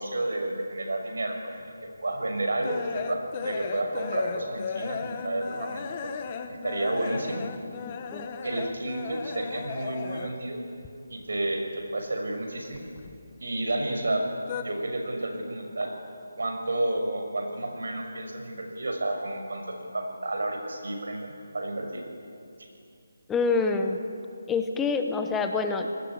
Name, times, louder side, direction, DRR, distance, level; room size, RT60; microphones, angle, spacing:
voice 1, 0.0-1.4 2.0-6.1 6.5-7.4 8.4-10.6 11.1-12.9 13.4-14.3 14.6-15.9 16.4-22.0 22.6-22.7, right 2 dB, 80° right, 4 dB, 6.1 m, -31 dB
sound 1, 1.8-10.6 10.8-12.0 12.3-13.7 14.0-14.6, left 6 dB, 25° left, 1.3 m, -36 dB
voice 2, 23.3-24.0 24.5-26.1, left 4 dB, 5° left, 5 dB, 1.0 m, -26 dB
28.5 x 19.5 x 9.9 m, 2.5 s
hypercardioid pair, 170°, 0 cm